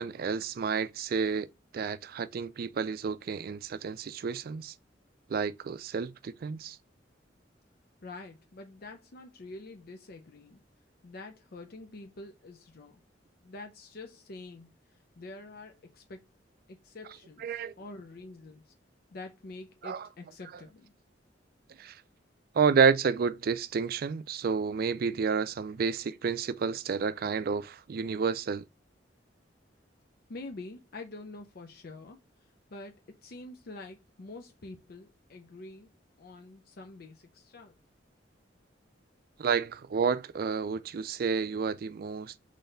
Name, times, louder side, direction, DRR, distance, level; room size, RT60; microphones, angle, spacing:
voice 1, 0.0-1.5 1.7-4.7 5.3-6.8 17.4-17.7 19.8-20.1 21.8-22.0 22.5-28.6 39.4-42.3, right 6 dB, 55° right, 0.4 m, -30 dB
voice 2, 8.0-10.6 11.0-13.0 13.4-14.7 15.2-16.2 16.7-18.7 19.1-20.9 30.3-35.9 36.2-37.7, left 2 dB, 55° left, 0.5 m, -46 dB
4.1 x 3.2 x 3.8 m
head